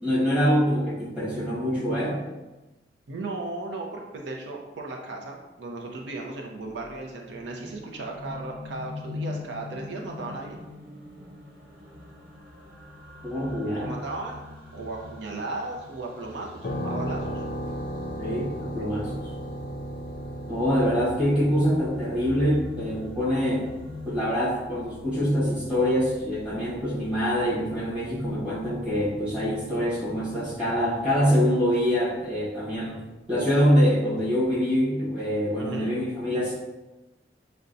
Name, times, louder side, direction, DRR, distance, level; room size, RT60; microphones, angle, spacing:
voice 1, 0.0-2.2 13.2-13.9 18.2-19.3 20.5-23.7 24.1-33.0 33.3-36.5, equal, 5° right, -9 dB, 1.3 m, -25 dB
voice 2, 3.1-10.6 13.8-14.4 14.7-17.4 35.6-35.9, right 2 dB, 85° right, 0 dB, 0.6 m, -36 dB
sound 1, 6.4-24.2, left 2 dB, 55° right, 1.1 m, -43 dB
sound 2, 16.6-31.3, equal, 50° left, 0.4 m, -38 dB
6.5 x 2.2 x 2.6 m, 1.1 s
head